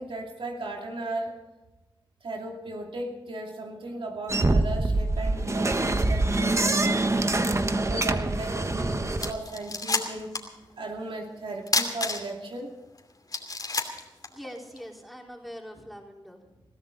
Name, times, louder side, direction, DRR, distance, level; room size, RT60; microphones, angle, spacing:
voice 1, 0.0-1.4 2.2-10.3 10.8-12.7, right 2 dB, 75° right, 1 dB, 2.6 m, -36 dB
sound 1, 4.3-9.3, right 2 dB, 30° right, 1.2 m, -25 dB
sound 2, 8.8-8.9 9.2-10.6 10.8-10.9 11.7-12.5 13.0-13.1 13.3-14.8, left 3 dB, 45° left, 2.7 m, -29 dB
voice 2, 14.3-16.6, equal, ahead, 0 dB, 4.1 m, -43 dB
21.5 x 14.5 x 4.0 m, 1.0 s
cardioid pair, 60°, 9 cm